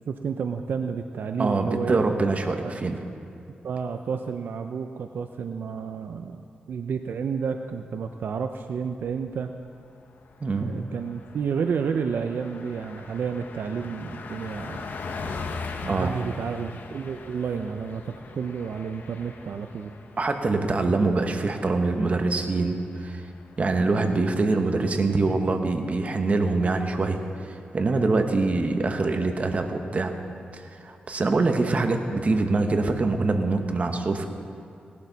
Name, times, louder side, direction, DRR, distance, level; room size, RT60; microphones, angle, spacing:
voice 1, 0.1-2.1 2.6-2.7 3.6-6.4 6.7-9.5 10.6-14.9 15.8-19.9, right 6 dB, 75° right, 7 dB, 0.5 m, -30 dB
voice 2, 1.4-3.0 10.4-10.7 15.9-16.2 20.2-23.2 23.6-27.2 27.4-30.1 30.5-34.3, right 3 dB, 45° right, 5 dB, 1.1 m, -24 dB
Car passing by, 8.5-9.1 9.5-9.6 9.9-24.2, left 4 dB, 70° left, 1.0 m, -41 dB
18.0 x 12.0 x 4.0 m, 2.6 s
cardioid pair, 90°, 3 cm